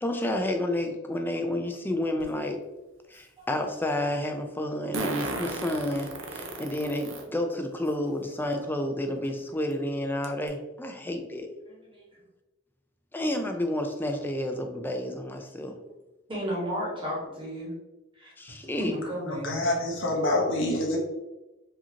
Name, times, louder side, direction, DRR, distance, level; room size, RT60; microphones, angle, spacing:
voice 1, 0.0-2.6 3.1-11.5 13.1-15.7 18.4-18.9, left 1 dB, 10° left, 4 dB, 0.4 m, -30 dB
Fart, 2.2-2.3 4.9-7.2 7.9-8.0 9.2-9.3 9.7-9.8 10.2-10.5, right 2 dB, 65° right, 0.7 m, -34 dB
voice 2, 11.7-12.1 15.5-15.9 16.3-17.7 18.1-18.3 18.8-19.6, equal, 25° right, -5 dB, 1.4 m, -34 dB
voice 3, 19.4-21.0, left 1 dB, 65° left, -1 dB, 1.1 m, -26 dB
4.9 x 2.9 x 2.8 m, 1.0 s
head